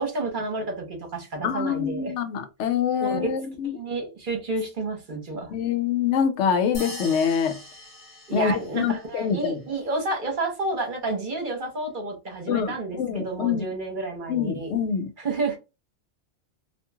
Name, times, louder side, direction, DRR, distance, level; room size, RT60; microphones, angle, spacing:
voice 1, 0.0-2.1 3.0-3.3 3.8-5.5 8.3-14.7 15.2-15.6, right 2 dB, 50° right, 0.9 m, -30 dB
voice 2, 1.4-3.7 5.5-7.6 8.3-9.6 12.5-13.7 14.3-15.1, left 7 dB, 85° left, 0.9 m, -25 dB
sound 1, 6.7-9.0, left 1 dB, 50° left, 1.4 m, -40 dB
2.9 x 2.5 x 2.3 m
omnidirectional pair, 1.2 m